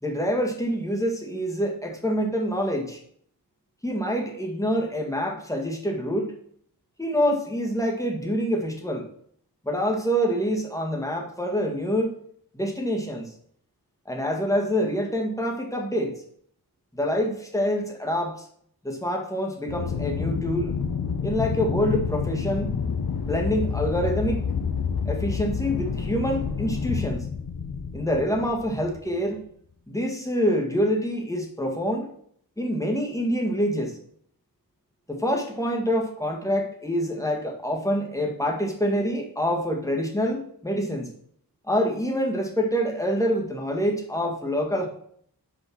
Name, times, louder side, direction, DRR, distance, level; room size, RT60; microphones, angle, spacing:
voice 1, 0.0-3.0 3.8-6.3 7.0-9.1 9.6-12.1 12.5-13.3 14.1-16.1 16.9-18.5 18.8-20.7 21.2-22.8 23.2-24.4 25.1-27.2 27.9-29.4 29.9-32.1 32.6-34.0 35.1-41.1 41.7-44.9, equal, 10° left, 1 dB, 1.8 m, -26 dB
Aircraft, 19.7-29.1, left 6 dB, 70° left, 1.1 m, -29 dB
6.0 x 5.3 x 6.1 m, 0.63 s
wide cardioid pair, 75°, 39 cm